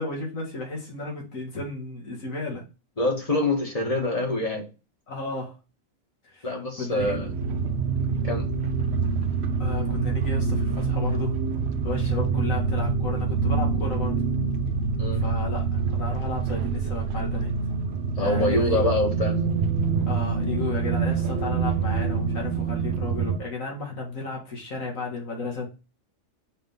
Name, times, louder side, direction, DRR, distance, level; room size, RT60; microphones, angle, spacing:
voice 1, 0.0-2.6 5.1-5.6 6.2-6.5 6.8-7.4 9.6-11.4 11.8-14.2 15.1-17.5 18.2-18.8 20.1-25.7, left 3 dB, 80° left, -1 dB, 2.2 m, -33 dB
voice 2, 3.0-4.6 6.4-7.3 8.2-8.5 15.0-15.2 18.2-19.4, left 2 dB, 30° left, 1 dB, 1.7 m, -25 dB
sound 1, 7.0-23.4, right 5 dB, 60° right, 0.9 m, -26 dB
5.5 x 3.5 x 5.3 m, 0.30 s
omnidirectional pair, 1.4 m